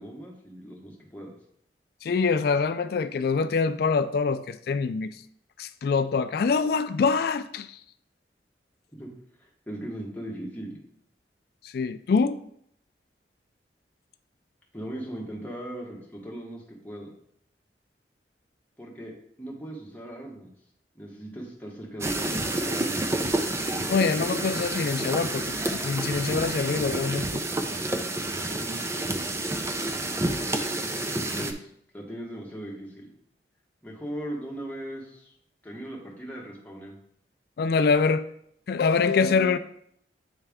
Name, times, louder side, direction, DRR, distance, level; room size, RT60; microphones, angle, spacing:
voice 1, 0.0-1.3 9.0-9.1 9.4-10.8 14.7-17.1 18.8-19.1 19.4-20.5 20.9-23.5 28.4-28.8 31.2-33.1 33.8-35.3 35.6-36.9, right 1 dB, 10° left, -2 dB, 1.1 m, -38 dB
voice 2, 2.0-5.2 5.6-7.8 11.6-12.4 23.9-27.4 37.6-38.3 38.7-39.6, left 5 dB, 60° left, 11 dB, 0.3 m, -25 dB
sound 1, 22.0-31.5, right 2 dB, 15° right, 0.4 m, -29 dB
8.9 x 3.3 x 3.5 m, 0.70 s
head